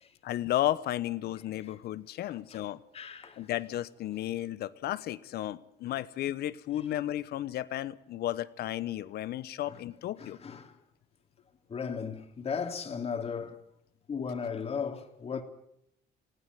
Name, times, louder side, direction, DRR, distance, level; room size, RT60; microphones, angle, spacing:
voice 1, 0.2-2.8 3.4-10.4, left 13 dB, 70° left, 1.1 m, -33 dB
voice 2, 2.9-3.4 6.0-6.1 9.7-9.8 10.2-10.8 11.7-13.6 14.1-15.4, left 6 dB, 35° left, 2.7 m, -36 dB
19.5 x 16.0 x 9.5 m
cardioid pair, 110°, 17 cm